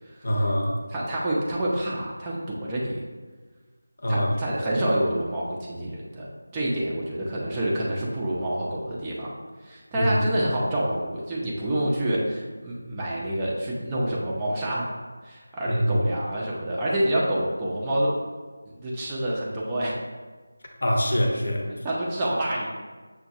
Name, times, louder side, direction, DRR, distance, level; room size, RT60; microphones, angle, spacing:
voice 1, 0.2-0.8 4.0-4.3 9.9-10.2 15.7-16.1 20.8-21.7, equal, 55° left, 1 dB, 0.7 m, -24 dB
voice 2, 0.9-3.0 4.1-6.3 6.5-9.3 9.6-14.9 15.2-18.2 18.7-20.0 21.7-22.7, right 1 dB, 15° right, -5 dB, 0.4 m, -27 dB
6.1 x 2.2 x 2.7 m, 1.4 s
figure-of-eight pair, 165°, 0 cm